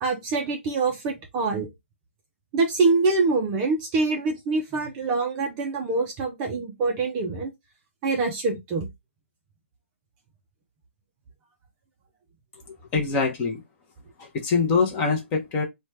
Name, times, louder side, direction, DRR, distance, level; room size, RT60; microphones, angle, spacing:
voice 1, 0.0-1.7 2.5-7.5 8.0-8.9, right 3 dB, 20° right, 0.4 m, -25 dB
voice 2, 12.9-13.6 14.2-15.6, left 4 dB, 20° left, 0.6 m, -24 dB
3.0 x 2.2 x 3.3 m
hypercardioid pair, 155°, 7 cm